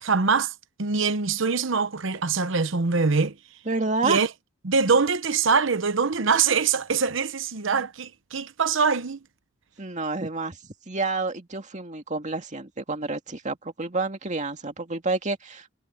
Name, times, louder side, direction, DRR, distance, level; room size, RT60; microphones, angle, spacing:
voice 1, 0.0-3.4 4.0-4.3 4.6-9.2, right 5 dB, 65° right, 0.9 m, -23 dB
voice 2, 3.7-4.2 9.8-10.6 10.9-15.7, right 3 dB, 35° right, 2.2 m, -29 dB
head